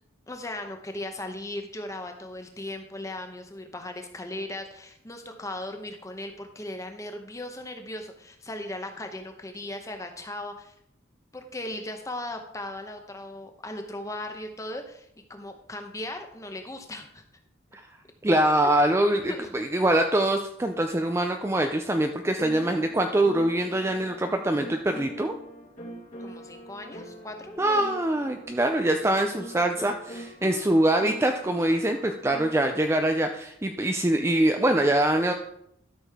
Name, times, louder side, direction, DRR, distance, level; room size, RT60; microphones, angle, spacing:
voice 1, 0.3-10.7 11.3-17.2 18.6-18.7 19.0-19.5 19.8-20.0 26.2-28.0, left 1 dB, 15° left, 5 dB, 0.8 m, -38 dB
voice 2, 18.2-25.3 27.6-35.3, right 1 dB, 15° right, 5 dB, 0.4 m, -24 dB
sound 1, 22.4-32.8, equal, 35° left, 1.6 m, -43 dB
12.5 x 6.3 x 3.5 m, 0.75 s
head